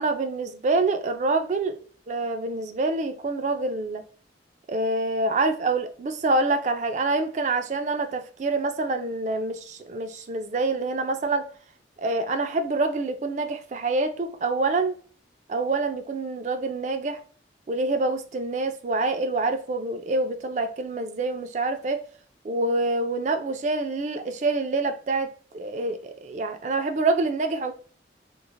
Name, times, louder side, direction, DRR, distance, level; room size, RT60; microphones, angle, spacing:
voice 1, 0.0-4.0 4.7-11.4 12.0-15.0 15.5-17.2 17.7-22.0 22.4-25.3 25.5-27.7, right 3 dB, 40° right, 0.3 m, -26 dB
3.1 x 2.4 x 2.4 m
head